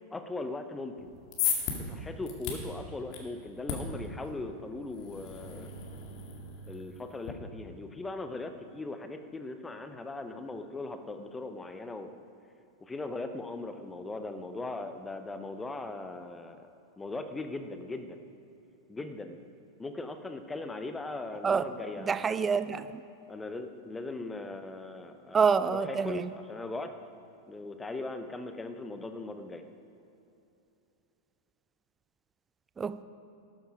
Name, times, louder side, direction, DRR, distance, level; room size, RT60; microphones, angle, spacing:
voice 1, 0.1-1.1 1.8-5.7 6.7-12.1 12.9-16.7 17.0-18.2 18.9-19.4 19.8-22.2 23.3-26.2 26.5-26.9 27.5-29.6, left 2 dB, 10° left, 8 dB, 1.0 m, -39 dB
sound 1, 1.0-7.3, left 6 dB, 40° left, 2.0 m, -37 dB
voice 2, 22.0-23.0 25.3-26.3 32.8-33.0, right 6 dB, 20° right, 14 dB, 0.5 m, -27 dB
13.0 x 11.5 x 5.0 m, 2.9 s
figure-of-eight pair, 90°, 0 cm